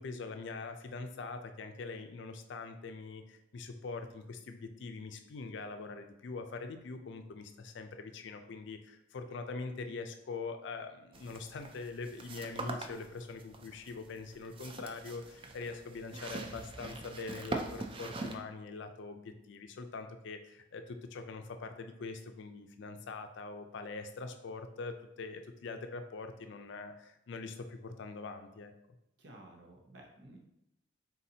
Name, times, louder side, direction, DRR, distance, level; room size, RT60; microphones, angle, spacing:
voice 1, 0.0-28.7, left 4 dB, 65° left, 7 dB, 0.4 m, -43 dB
sound 1, 11.1-18.4, right 3 dB, 25° right, 0.4 m, -43 dB
voice 2, 29.2-30.4, right 1 dB, 65° right, 1 dB, 0.8 m, -54 dB
4.1 x 3.9 x 2.8 m, 0.84 s
head